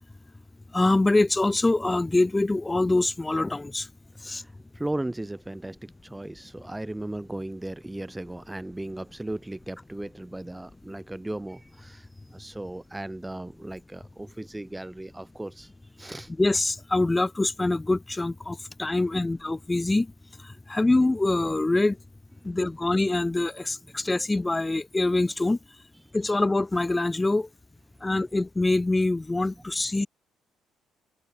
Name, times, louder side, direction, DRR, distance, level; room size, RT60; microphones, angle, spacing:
voice 1, 0.7-3.9 4.2-4.4 16.4-20.1 20.4-22.0 22.4-25.6 26.1-27.5 28.0-30.1, left 2 dB, 20° left, 3.0 m, -24 dB
voice 2, 4.3-15.7 16.0-16.3 22.4-22.5 29.5-29.6, right 1 dB, 10° right, 2.2 m, -36 dB
hypercardioid pair, 55°, 0 cm